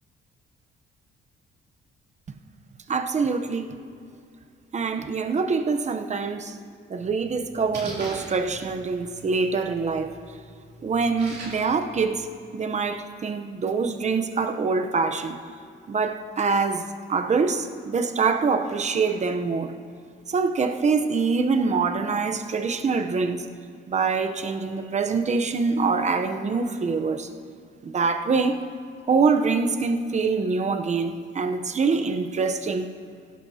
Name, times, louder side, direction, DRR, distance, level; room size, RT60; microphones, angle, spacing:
voice 1, 2.9-3.8 4.7-6.6 6.9-10.1 10.8-12.3 12.5-15.4 15.9-19.7 20.3-23.5 23.9-27.3 27.8-28.6 29.1-32.9, right 4 dB, 35° right, 0.8 m, -24 dB
Splash splatter, 7.0-12.0, right 1 dB, 55° right, 2.8 m, -42 dB
17.0 x 11.0 x 2.8 m
cardioid pair, 90°, 20 cm